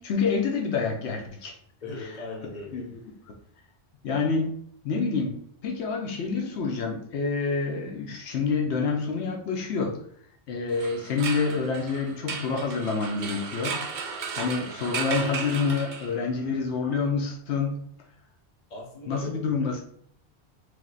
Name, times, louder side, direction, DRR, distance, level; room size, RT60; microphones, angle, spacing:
voice 1, 0.0-1.6 2.7-3.0 4.0-4.5 4.8-10.0 10.5-13.8 14.3-17.8 19.1-19.8, left 4 dB, 90° left, 2 dB, 1.0 m, -27 dB
voice 2, 1.8-3.0 18.7-19.3, left 2 dB, 45° left, -1 dB, 1.1 m, -38 dB
sound 1, 10.7-16.4, right 5 dB, 55° right, 0.6 m, -35 dB
3.4 x 2.8 x 3.8 m, 0.65 s
omnidirectional pair, 1.1 m